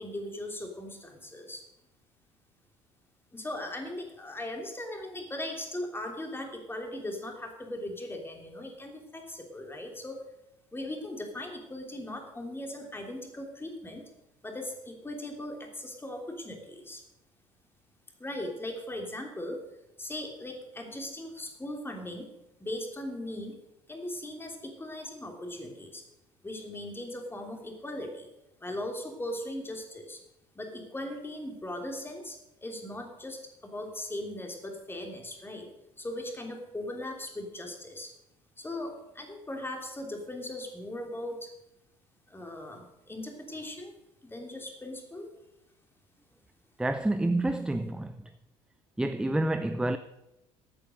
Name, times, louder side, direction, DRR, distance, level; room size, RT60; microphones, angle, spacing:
voice 1, 0.0-1.6 3.3-10.2 10.7-14.0 14.4-17.0 18.2-19.6 20.0-22.3 22.6-23.6 23.9-26.0 26.4-28.3 28.6-30.2 30.5-35.7 36.0-38.1 38.6-41.5 42.3-43.9 44.2-45.3, left 1 dB, 15° left, 3.1 m, -39 dB
voice 2, 46.8-48.3 49.0-50.0, right 2 dB, 5° right, 0.5 m, -28 dB
14.5 x 8.8 x 6.4 m
figure-of-eight pair, 60°, 18 cm